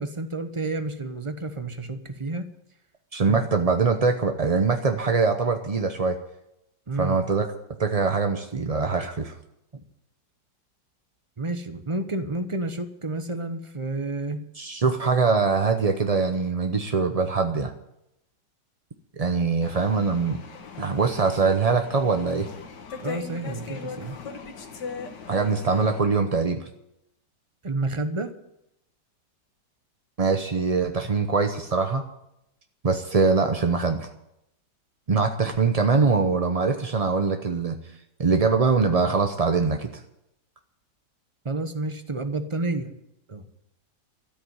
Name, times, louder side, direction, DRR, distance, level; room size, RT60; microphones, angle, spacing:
voice 1, 0.0-2.5 3.3-3.4 6.9-7.2 9.7-9.8 11.4-14.4 23.0-24.2 27.6-28.3 41.4-42.9 43.3-43.5, right 2 dB, 25° right, 8 dB, 0.8 m, -30 dB
voice 2, 3.1-6.2 7.0-7.5 7.8-9.3 14.6-17.7 19.2-20.4 20.8-22.5 25.3-26.7 30.2-32.0 32.8-34.1 35.1-37.8 38.2-39.9, right 4 dB, 50° right, 6 dB, 0.4 m, -23 dB
sound 1, 19.6-26.0, left 5 dB, 70° left, 1.9 m, -39 dB
13.5 x 8.6 x 9.6 m, 0.83 s
omnidirectional pair, 1.9 m